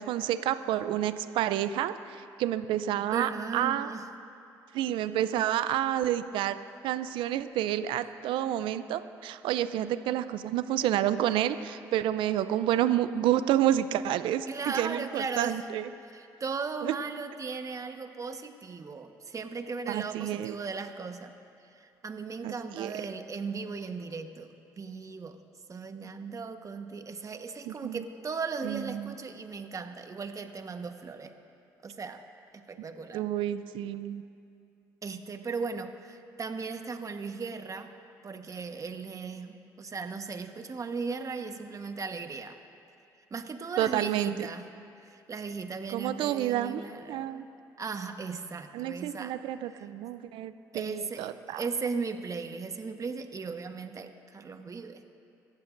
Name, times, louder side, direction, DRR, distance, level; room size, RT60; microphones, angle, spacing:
voice 1, 0.0-3.9 4.7-6.6 6.8-15.9 16.8-16.9 19.9-20.5 22.4-22.9 27.7-28.0 28.6-29.1 33.1-34.2 43.8-44.5 45.9-46.8 47.1-47.5 48.7-51.6, right 12 dB, 70° right, 12 dB, 0.5 m, -29 dB
voice 2, 3.1-4.1 14.5-15.6 16.1-21.3 21.7-25.4 25.7-31.3 31.8-32.2 32.5-33.3 35.0-37.9 38.2-42.6 43.3-44.7 45.1-47.3 47.8-49.3 49.7-49.9 50.7-55.0, right 4 dB, 40° right, 7 dB, 1.3 m, -37 dB
25.5 x 14.5 x 2.6 m, 2.5 s
hypercardioid pair, 55°, 9 cm